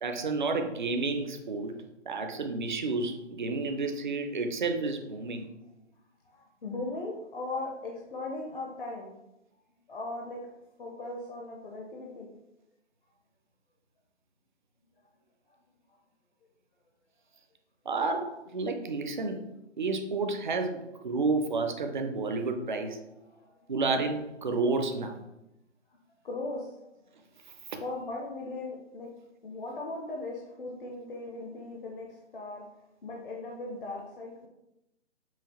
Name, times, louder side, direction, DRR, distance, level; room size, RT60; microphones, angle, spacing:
voice 1, 0.0-1.7 2.1-5.5 17.9-19.5 19.8-23.0 23.7-25.2 27.7-27.8, right 3 dB, 40° right, 6 dB, 0.4 m, -30 dB
voice 2, 6.2-9.2 9.9-10.4 10.8-12.3 23.3-23.7 26.2-27.0 27.8-29.1 29.4-32.6 33.0-34.5, left 2 dB, 45° left, -1 dB, 0.6 m, -38 dB
5.7 x 2.3 x 2.9 m, 0.89 s
hypercardioid pair, 165°, 37 cm